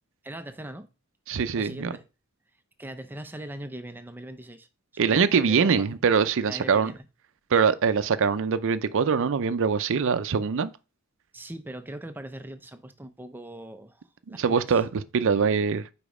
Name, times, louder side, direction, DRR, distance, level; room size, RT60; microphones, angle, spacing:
voice 1, 0.2-0.9 1.6-2.1 2.8-4.7 4.9-5.9 6.5-7.0 11.3-14.8, right 1 dB, 10° right, 0.5 m, -41 dB
voice 2, 1.3-1.9 5.0-6.9 7.5-10.7 14.3-15.9, right 6 dB, 60° right, 0.5 m, -23 dB
5.1 x 5.0 x 4.8 m
head